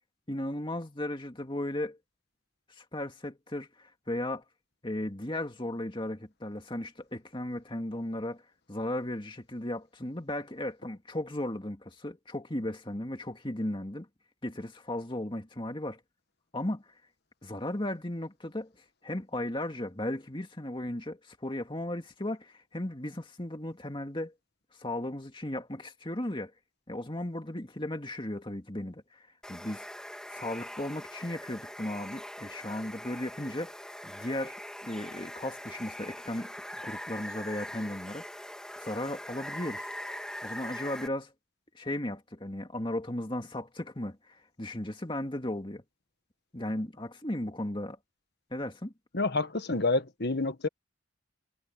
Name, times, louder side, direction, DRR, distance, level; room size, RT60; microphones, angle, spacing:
voice 1, 0.3-2.0 2.8-4.4 4.8-8.4 8.7-14.1 14.4-16.0 16.5-16.8 17.4-18.7 19.0-24.3 24.8-26.5 26.9-29.9 30.3-33.7 34.0-36.5 36.8-38.2 38.8-39.9 40.4-41.3 41.7-45.8 46.5-48.0 48.5-48.9, left 1 dB, 25° left, 2.2 m, -36 dB
Water, 29.4-41.1, left 1 dB, 5° left, 2.7 m, -42 dB
voice 2, 49.1-50.7, left 3 dB, 50° left, 1.5 m, -28 dB
head